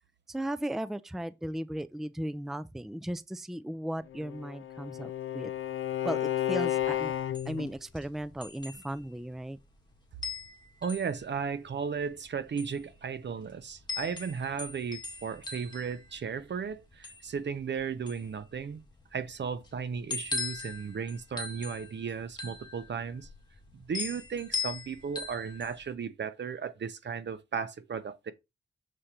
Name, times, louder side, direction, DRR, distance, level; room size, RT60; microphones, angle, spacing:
voice 1, 0.3-5.5 6.0-7.1 7.5-9.6, right 1 dB, ahead, 0.4 m, -36 dB
Bowed string instrument, 4.1-7.7, left 12 dB, 90° left, 0.7 m, -32 dB
sound 1, 6.8-25.9, left 4 dB, 20° left, 2.0 m, -41 dB
voice 2, 10.8-18.8 19.1-23.3 23.7-28.3, right 6 dB, 65° right, 0.9 m, -35 dB
6.6 x 5.0 x 4.4 m
wide cardioid pair, 100°, 20 cm